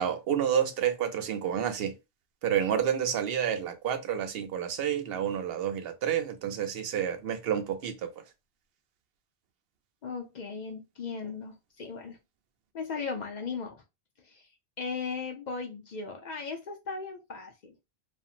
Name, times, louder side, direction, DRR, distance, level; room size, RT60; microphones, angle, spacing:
voice 1, 0.0-1.9 2.4-8.1, right 9 dB, 75° right, 0.8 m, -29 dB
voice 2, 10.0-12.2 12.7-13.8 14.2-14.5 14.8-17.7, left 5 dB, 55° left, 0.6 m, -37 dB
2.8 x 2.4 x 2.4 m
omnidirectional pair, 1.0 m